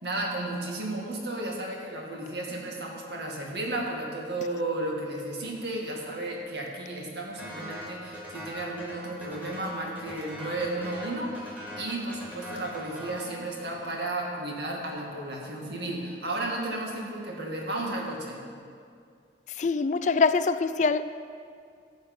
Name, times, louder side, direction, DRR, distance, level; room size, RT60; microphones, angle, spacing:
voice 1, 0.0-18.5, right 2 dB, 70° right, 2.0 m, -33 dB
sound 1, 7.4-14.1, left 1 dB, 10° right, 2.3 m, -42 dB
voice 2, 19.5-21.0, left 4 dB, 45° left, 0.3 m, -24 dB
14.0 x 8.4 x 5.4 m
head